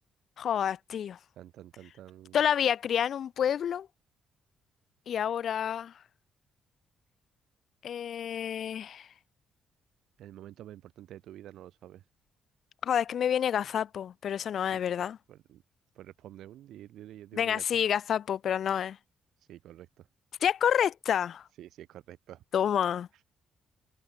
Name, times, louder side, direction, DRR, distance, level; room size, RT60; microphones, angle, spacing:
voice 1, 0.4-1.2 2.3-3.9 5.1-5.9 7.8-9.1 12.8-15.2 17.3-19.0 20.4-21.4 22.5-23.2, left 9 dB, 45° left, 0.6 m, -28 dB
voice 2, 1.4-2.4 10.2-12.0 15.3-15.6 15.9-17.8 19.4-19.9 21.6-22.4, right 12 dB, 70° right, 0.7 m, -48 dB
cardioid pair, 180°, 0 cm